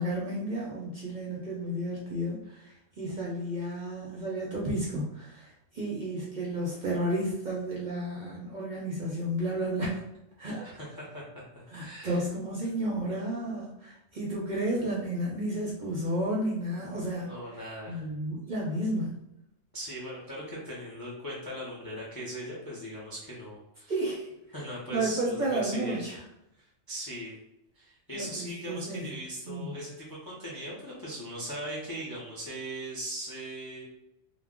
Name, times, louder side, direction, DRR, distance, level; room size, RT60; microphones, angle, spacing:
voice 1, 0.0-2.4 3.0-10.0 10.4-10.6 11.7-17.3 17.9-19.1 23.9-24.3 24.9-26.2 28.1-29.2 29.5-29.8, right 1 dB, 50° right, -5 dB, 0.6 m, -32 dB
voice 2, 10.6-12.2 17.2-18.1 19.7-23.9 24.5-26.1 26.9-27.4 27.8-33.8, equal, 35° left, -5 dB, 0.3 m, -39 dB
2.3 x 2.0 x 3.5 m, 0.85 s
omnidirectional pair, 1.3 m